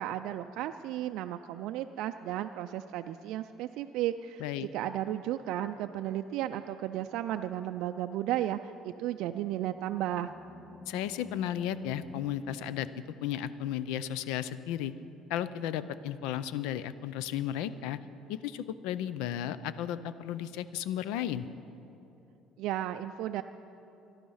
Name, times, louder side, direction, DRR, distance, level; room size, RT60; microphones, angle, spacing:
voice 1, 0.0-10.3 22.6-23.4, right 12 dB, 75° right, 7 dB, 0.3 m, -34 dB
Animal, 9.3-13.8, left 1 dB, 20° left, 0.4 m, -50 dB
voice 2, 10.9-12.9 13.2-14.9 15.3-18.0 18.3-21.5, left 11 dB, 85° left, 15 dB, 0.5 m, -34 dB
15.5 x 11.5 x 5.6 m, 2.9 s
cardioid pair, 110°, 0 cm